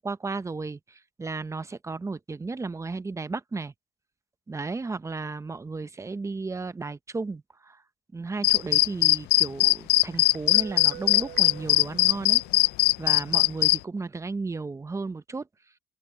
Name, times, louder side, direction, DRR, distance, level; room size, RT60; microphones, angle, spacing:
voice 1, 0.0-3.7 4.5-7.8 8.1-12.4 13.0-15.5, right 3 dB, 15° right, 0.8 m, -34 dB
sound 1, 8.4-13.8, left 18 dB, 80° left, 0.4 m, -20 dB
Guitar, 10.1-12.9, right 15 dB, 75° right, 7.5 m, -45 dB
open air
cardioid pair, 110°, 17 cm